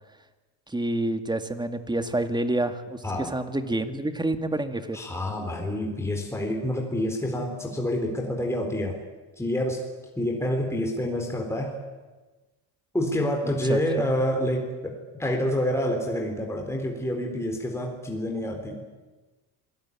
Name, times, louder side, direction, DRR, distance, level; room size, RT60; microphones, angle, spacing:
voice 1, 0.7-5.0 13.4-14.1, right 1 dB, 10° right, 9 dB, 2.0 m, -28 dB
voice 2, 4.9-9.0 9.4-9.8 10.2-11.7 12.9-18.8, left 1 dB, 5° left, 1 dB, 4.0 m, -28 dB
26.5 x 19.0 x 9.8 m, 1.2 s
cardioid pair, 120°, 44 cm